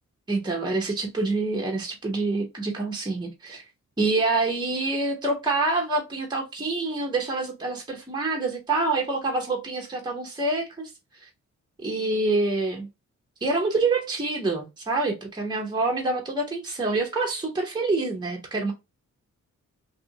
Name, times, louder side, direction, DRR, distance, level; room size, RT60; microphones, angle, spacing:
voice 1, 0.3-3.6 4.0-10.9 11.2-11.3 11.8-12.9 13.4-18.7, right 3 dB, 15° right, 0.8 m, -26 dB
2.7 x 2.5 x 2.7 m
wide cardioid pair, 100°, 31 cm